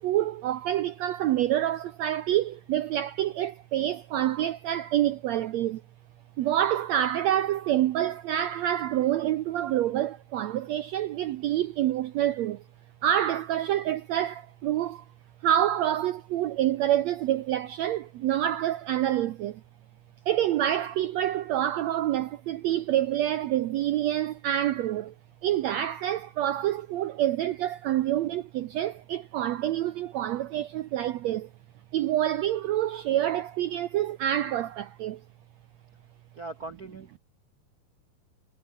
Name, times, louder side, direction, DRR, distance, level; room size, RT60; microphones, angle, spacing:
voice 1, 0.0-5.8 6.4-12.6 13.0-15.0 15.4-19.6 20.3-25.1 25.4-31.5 31.9-35.2, right 12 dB, 75° right, 1.6 m, -27 dB
voice 2, 36.3-37.2, right 3 dB, 50° right, 1.1 m, -40 dB
omnidirectional pair, 4.0 m